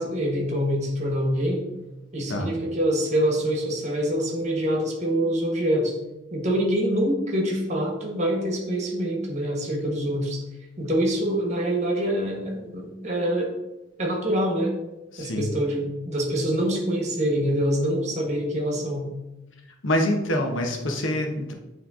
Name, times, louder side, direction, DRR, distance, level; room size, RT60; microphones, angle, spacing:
voice 1, 0.0-1.6 2.1-5.9 6.3-10.4 10.8-13.5 14.0-14.7 15.2-19.1, equal, 40° right, 0 dB, 1.4 m, -25 dB
voice 2, 15.1-15.5 19.8-21.5, left 1 dB, 85° left, 3 dB, 1.0 m, -25 dB
9.2 x 3.3 x 3.7 m, 0.98 s
head